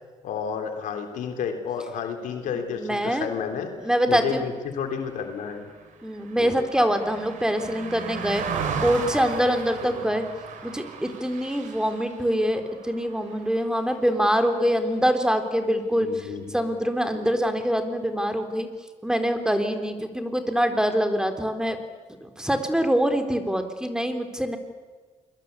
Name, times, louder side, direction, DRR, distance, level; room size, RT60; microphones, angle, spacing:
voice 1, 0.2-3.7 4.1-5.7 6.4-6.6 16.0-16.6 17.1-17.3, left 7 dB, 90° left, 5 dB, 3.4 m, -31 dB
voice 2, 2.7-3.3 3.8-4.4 6.0-10.2 10.6-18.7 19.0-21.8 22.2-24.6, equal, 5° right, 7 dB, 3.8 m, -24 dB
Car passing by, 5.0-14.5 14.9-15.1, right 6 dB, 85° right, 4.2 m, -36 dB
28.5 x 22.5 x 8.5 m, 1.4 s
cardioid pair, 70°, 13 cm